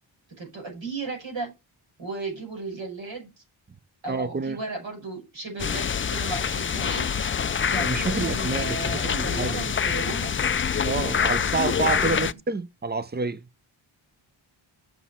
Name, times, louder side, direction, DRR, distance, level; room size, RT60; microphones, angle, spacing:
voice 1, 0.4-1.5 2.0-3.4 4.0-7.1 7.6-10.3 12.0-12.2, right 3 dB, 65° right, 5.4 m, -35 dB
voice 2, 4.1-4.6 7.8-9.6 10.8-13.4, right 4 dB, 20° right, 0.6 m, -28 dB
sound 1, 5.6-12.3, left 7 dB, 30° left, 0.4 m, -26 dB
8.0 x 6.1 x 4.2 m
wide cardioid pair, 85°, 48 cm